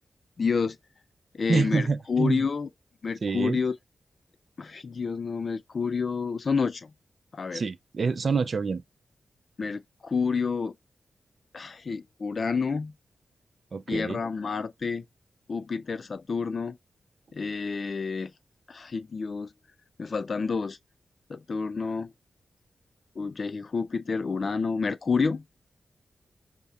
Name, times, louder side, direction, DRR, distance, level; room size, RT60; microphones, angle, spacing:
voice 1, 0.4-0.8 1.3-2.7 3.0-3.8 4.6-6.9 7.3-7.6 9.6-10.7 11.5-12.9 13.9-15.0 15.5-16.8 17.3-18.3 18.7-19.5 20.0-20.8 21.3-22.1 23.2-25.4, left 5 dB, 50° left, 0.3 m, -29 dB
voice 2, 1.5-2.5 3.2-3.6 7.5-8.8 13.7-14.2, right 4 dB, 50° right, 0.5 m, -27 dB
5.5 x 2.1 x 3.5 m
wide cardioid pair, 105°, 0 cm